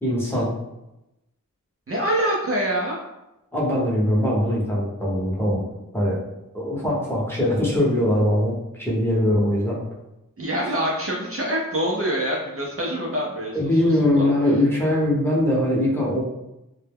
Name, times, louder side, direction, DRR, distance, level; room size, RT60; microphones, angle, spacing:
voice 1, 0.0-0.5 3.5-5.6 5.9-6.2 6.5-9.8 13.5-16.3, left 1 dB, 5° left, -6 dB, 0.8 m, -21 dB
voice 2, 1.9-3.0 10.4-14.6, right 1 dB, 40° right, -4 dB, 0.5 m, -26 dB
2.1 x 2.0 x 3.4 m, 0.92 s
wide cardioid pair, 70°, 34 cm